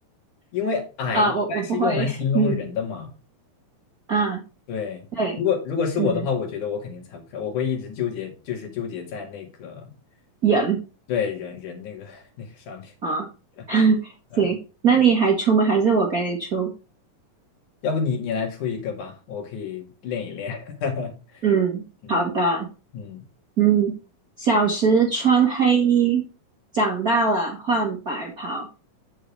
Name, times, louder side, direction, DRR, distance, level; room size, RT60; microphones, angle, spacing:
voice 1, 0.5-3.1 4.7-5.0 5.4-9.8 11.1-12.8 14.3-14.5 17.8-21.1 22.1-22.2 22.9-23.2, left 6 dB, 70° left, 3.4 m, -28 dB
voice 2, 1.1-2.6 4.1-4.4 5.1-5.4 6.0-6.3 10.4-10.8 13.0-13.3 13.7-14.0 14.4-14.6 14.8-16.7 21.4-21.8 22.1-22.7 23.6-23.9 24.4-26.2 26.7-28.7, right 5 dB, 40° right, 1.3 m, -21 dB
8.9 x 6.7 x 3.2 m
omnidirectional pair, 3.7 m